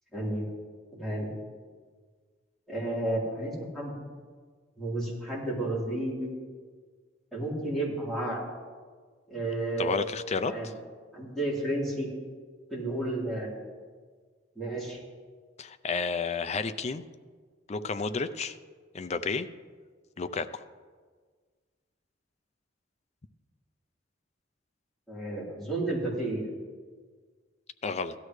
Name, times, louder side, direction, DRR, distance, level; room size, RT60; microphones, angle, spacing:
voice 1, 0.1-0.4 0.9-1.3 2.7-3.9 4.8-6.3 7.3-8.4 9.3-10.0 10.5-10.7 11.1-12.1 12.7-13.5 14.6-15.0 25.1-26.4, right 1 dB, ahead, -7 dB, 3.8 m, -32 dB
voice 2, 9.8-10.6 15.6-17.0 17.7-18.6 18.9-19.5 20.2-20.6 27.8-28.1, left 4 dB, 35° left, 11 dB, 0.5 m, -31 dB
17.0 x 12.5 x 3.2 m, 1.5 s
head